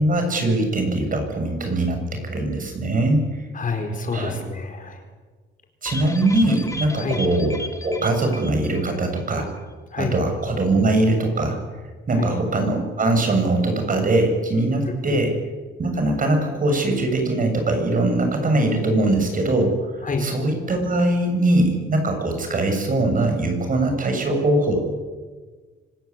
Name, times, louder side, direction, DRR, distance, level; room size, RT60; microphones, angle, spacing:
voice 1, 0.0-3.3 4.1-4.4 5.8-9.5 10.0-11.6 12.1-15.3 15.8-19.7 20.2-24.8, right 2 dB, 45° right, 5 dB, 7.2 m, -21 dB
voice 2, 3.5-5.0 7.0-7.2 9.9-10.1 12.1-12.3 15.1-15.2 20.0-20.3, left 4 dB, 40° left, 4 dB, 4.6 m, -27 dB
sound 1, 5.9-9.3 9.6-9.7 10.0-10.1, left 2 dB, 15° left, 2.7 m, -34 dB
25.5 x 15.0 x 9.7 m, 1.4 s
cardioid pair, 90°, 20 cm